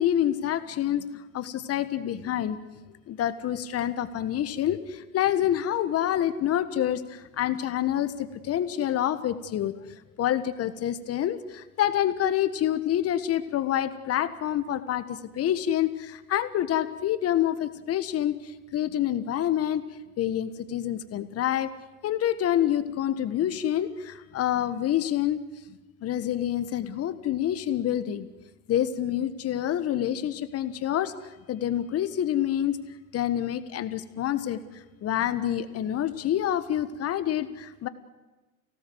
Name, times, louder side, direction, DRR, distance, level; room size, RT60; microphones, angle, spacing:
voice 1, 0.0-2.6 3.1-9.7 10.2-19.8 20.2-21.7 22.0-25.4 26.0-28.3 28.7-31.1 31.5-32.8 33.1-37.9, left 11 dB, 35° left, 12 dB, 1.4 m, -27 dB
29.5 x 17.5 x 7.9 m, 1.1 s
hypercardioid pair, 100°, 44 cm